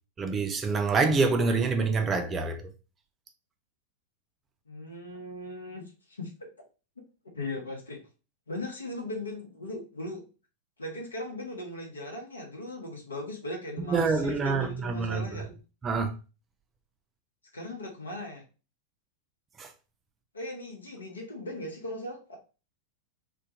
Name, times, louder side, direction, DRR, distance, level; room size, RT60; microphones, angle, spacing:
voice 1, 0.2-2.7 13.9-15.4 15.8-16.2 19.6-19.7, right 4 dB, 20° right, 0.4 m, -26 dB
voice 2, 4.7-5.8 6.2-6.5 7.3-8.0 8.5-10.2 10.8-15.5 17.5-18.4 20.3-22.4, left 1 dB, 75° left, 0.8 m, -38 dB
2.2 x 2.2 x 2.7 m
figure-of-eight pair, 90°, 0 cm